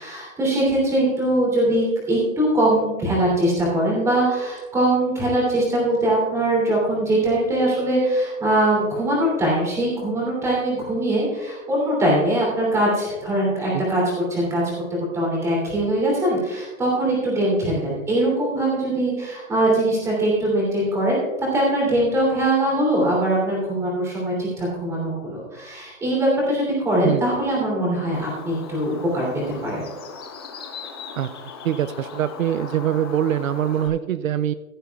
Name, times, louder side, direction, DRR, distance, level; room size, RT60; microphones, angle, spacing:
voice 1, 0.0-14.6 15.1-29.3 29.6-29.8, right 1 dB, 5° right, -5 dB, 2.9 m, -22 dB
Bird, 28.1-33.9, left 5 dB, 20° left, 0.6 m, -39 dB
voice 2, 31.6-34.5, right 10 dB, 70° right, 14 dB, 0.6 m, -23 dB
15.5 x 11.0 x 2.3 m, 1.2 s
hypercardioid pair, 165°, 41 cm